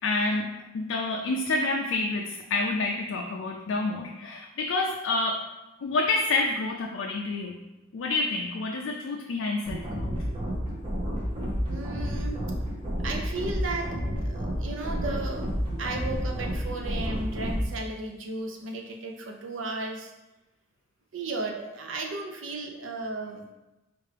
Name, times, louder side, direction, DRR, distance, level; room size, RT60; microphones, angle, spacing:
voice 1, 0.0-5.5 5.8-7.6 7.9-10.2, left 3 dB, 65° left, 1 dB, 0.4 m, -28 dB
sound 1, 9.7-17.7, equal, 25° right, 0.9 m, -30 dB
voice 2, 11.7-12.4 13.0-15.5 15.8-20.1 21.1-23.5, right 2 dB, 70° right, 1 dB, 0.6 m, -35 dB
4.5 x 2.5 x 3.3 m, 1.0 s
head